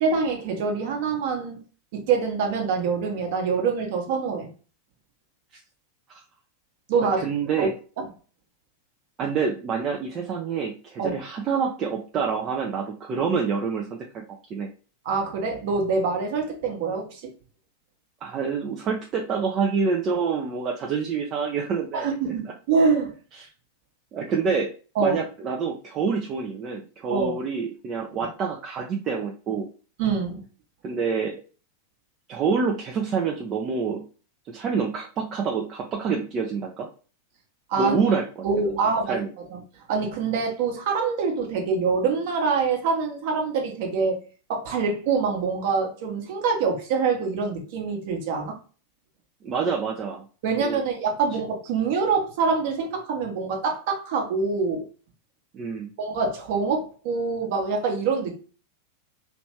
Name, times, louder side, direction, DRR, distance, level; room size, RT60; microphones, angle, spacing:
voice 1, 0.0-1.6 1.9-4.5 6.9-7.2 7.6-7.7 11.0-11.1 15.0-17.2 21.9-23.1 25.0-25.2 27.1-27.3 30.0-30.4 37.7-38.0 38.4-39.2 39.5-39.6 39.9-44.2 44.5-48.5 50.4-54.8 56.0-58.3, right 5 dB, 50° right, 2 dB, 1.1 m, -25 dB
voice 2, 7.2-7.7 9.2-14.2 14.5-14.7 18.2-22.5 23.4-23.5 24.1-24.7 25.0-29.7 30.8-31.4 32.3-34.0 34.5-36.9 37.8-38.3 38.7-38.8 39.1-39.3 49.4-50.2 50.6-50.8 55.5-55.9, right 5 dB, 30° right, 0 dB, 0.5 m, -27 dB
3.1 x 3.0 x 2.9 m, 0.37 s
figure-of-eight pair, 90°, 0 cm